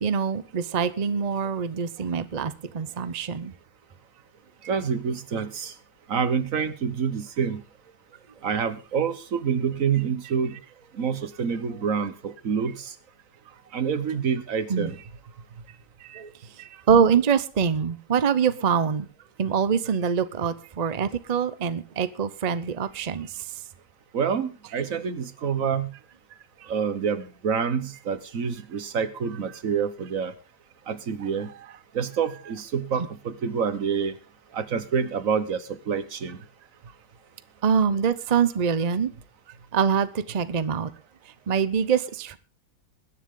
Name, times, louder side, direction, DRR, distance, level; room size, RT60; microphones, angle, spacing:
voice 1, 0.0-3.5 14.7-14.9 16.0-16.3 16.6-19.1 19.4-23.4 26.6-26.7 37.6-39.1 39.7-40.9 41.5-42.4, right 6 dB, 70° right, 0.3 m, -24 dB
voice 2, 4.7-5.7 6.1-7.6 8.4-10.5 11.0-12.9 13.7-15.0 24.1-25.9 26.7-30.3 30.9-31.5 31.9-34.1 34.5-36.4, right 6 dB, 50° right, 1.4 m, -27 dB
21.0 x 10.0 x 3.8 m
omnidirectional pair, 2.0 m